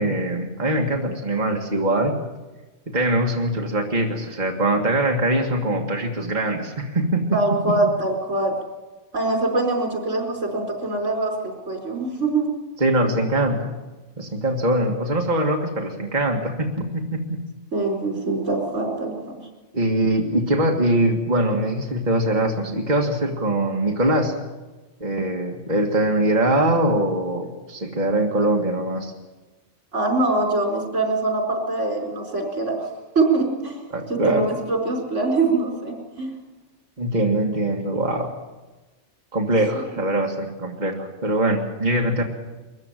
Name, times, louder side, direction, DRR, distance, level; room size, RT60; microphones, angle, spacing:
voice 1, 0.0-2.1 2.9-7.8 12.8-13.7 14.2-17.4 19.7-24.3 25.0-29.1 33.9-34.5 37.0-38.3 39.3-42.2, right 1 dB, 40° right, 1 dB, 2.1 m, -22 dB
voice 2, 7.3-8.5 9.1-12.5 17.7-19.1 29.9-32.9 33.1-33.8 34.1-36.3, right 2 dB, 85° right, 2 dB, 5.1 m, -23 dB
22.5 x 15.0 x 9.1 m, 1.2 s
omnidirectional pair, 1.2 m